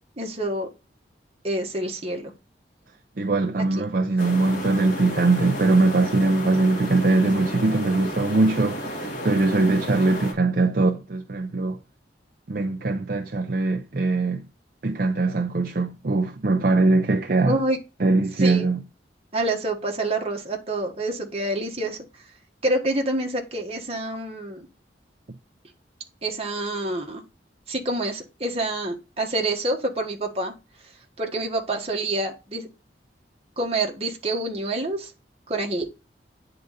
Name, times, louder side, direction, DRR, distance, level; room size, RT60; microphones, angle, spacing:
voice 1, 0.2-0.7 1.4-2.3 17.4-17.8 18.4-18.7 19.3-22.0 22.6-24.7 26.2-27.2 27.7-30.5 31.2-32.7 33.6-35.1 35.5-35.9, right 2 dB, 35° right, 1.6 m, -27 dB
voice 2, 3.2-11.8 12.5-14.4 14.8-17.6 18.0-18.8, right 3 dB, 50° right, 0.6 m, -21 dB
sound 1, 4.2-10.3, equal, 45° left, 2.1 m, -32 dB
9.4 x 3.9 x 4.1 m
head